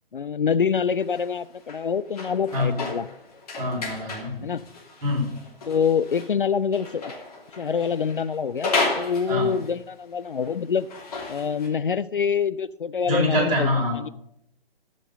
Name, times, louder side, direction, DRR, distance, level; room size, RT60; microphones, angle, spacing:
voice 1, 0.1-3.1 4.4-4.6 5.7-7.1 7.6-10.9 11.3-14.1, left 6 dB, 60° left, 16 dB, 0.4 m, -26 dB
sound 1, 1.0-6.3 6.7-9.9 10.2-11.7, left 3 dB, 40° left, 2.7 m, -33 dB
voice 2, 3.6-4.5 5.0-5.4 9.3-9.5 13.1-14.1, left 1 dB, 35° right, -1 dB, 3.6 m, -25 dB
14.0 x 5.3 x 6.6 m, 0.76 s
figure-of-eight pair, 140°, 30 cm